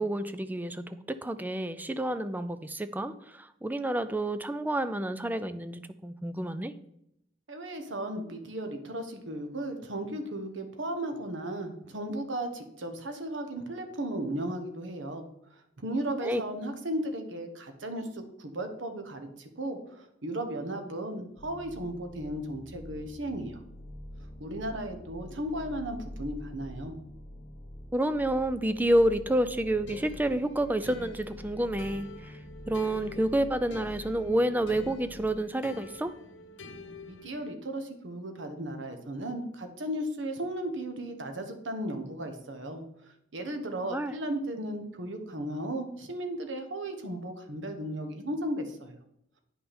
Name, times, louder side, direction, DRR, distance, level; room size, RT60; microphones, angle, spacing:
voice 1, 0.0-6.7 16.2-16.4 27.9-32.3 32.7-36.1 43.8-44.1, right 1 dB, 10° right, 12 dB, 0.4 m, -29 dB
voice 2, 7.5-23.6 24.4-26.9 37.1-42.8 43.3-49.0, right 1 dB, 80° right, 6 dB, 1.2 m, -35 dB
sound 1, 21.4-35.3, left 1 dB, 45° left, 0.9 m, -46 dB
sound 2, 29.9-37.5, left 2 dB, 90° left, 0.9 m, -47 dB
9.3 x 5.6 x 4.3 m, 0.77 s
head